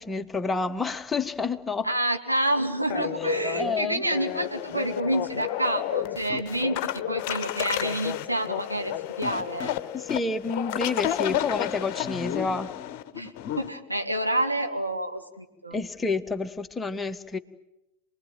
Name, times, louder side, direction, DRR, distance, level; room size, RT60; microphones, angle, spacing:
voice 1, 0.0-1.9 3.0-4.0 9.9-12.7 15.7-17.4, left 4 dB, 15° left, 8 dB, 1.3 m, -29 dB
voice 2, 1.8-9.7 13.1-15.8, right 1 dB, 85° right, 3 dB, 2.4 m, -28 dB
sound 1, 2.9-13.7, left 12 dB, 45° left, 1.1 m, -31 dB
28.0 x 20.5 x 9.1 m, 0.95 s
figure-of-eight pair, 90°, 0 cm